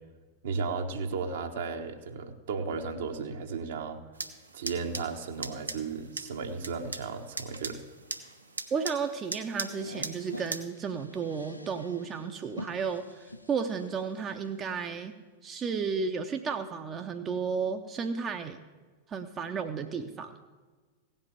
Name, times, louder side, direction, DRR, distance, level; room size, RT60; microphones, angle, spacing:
voice 1, 0.4-4.0 4.5-7.8, right 5 dB, 60° right, 5 dB, 1.1 m, -34 dB
sound 1, 4.1-10.6, right 3 dB, 80° right, 0.8 m, -40 dB
sound 2, 8.7-14.8, left 1 dB, 85° left, 0.5 m, -47 dB
voice 2, 8.7-15.1 15.4-18.6 19.1-20.3, right 5 dB, 25° right, 6 dB, 0.6 m, -33 dB
16.5 x 5.4 x 8.8 m, 1.4 s
figure-of-eight pair, 90°, 0 cm